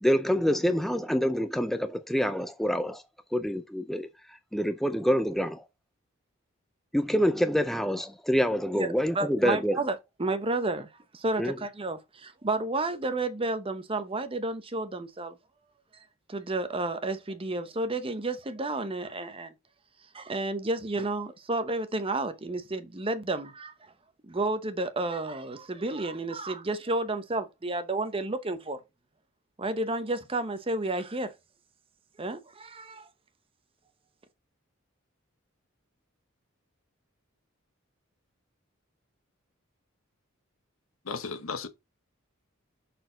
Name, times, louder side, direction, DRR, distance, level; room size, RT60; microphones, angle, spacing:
voice 1, 0.0-3.0 3.3-5.6 6.9-9.8 11.4-11.5, equal, ahead, 0.4 m, -26 dB
voice 2, 8.7-15.3 16.3-19.5 20.1-23.7 24.2-28.8 29.6-31.3 32.2-33.1, right 2 dB, 25° right, 0.8 m, -31 dB
voice 3, 41.0-41.7, left 5 dB, 80° left, 1.0 m, -34 dB
6.3 x 4.2 x 3.8 m
head